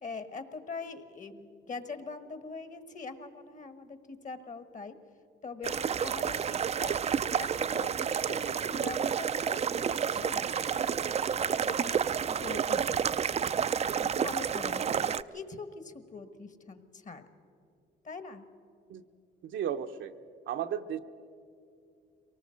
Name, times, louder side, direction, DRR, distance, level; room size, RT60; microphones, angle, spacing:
voice 1, 0.0-5.0 5.4-10.5 11.6-13.2 14.0-17.3 18.0-18.5, left 4 dB, 40° left, 11 dB, 1.4 m, -43 dB
sound 1, 5.6-15.2, right 7 dB, 35° right, 0.4 m, -30 dB
voice 2, 19.4-20.1 20.5-21.0, right 9 dB, 75° right, 7 dB, 0.8 m, -34 dB
23.5 x 19.0 x 6.4 m, 2.5 s
cardioid pair, 90°, 20 cm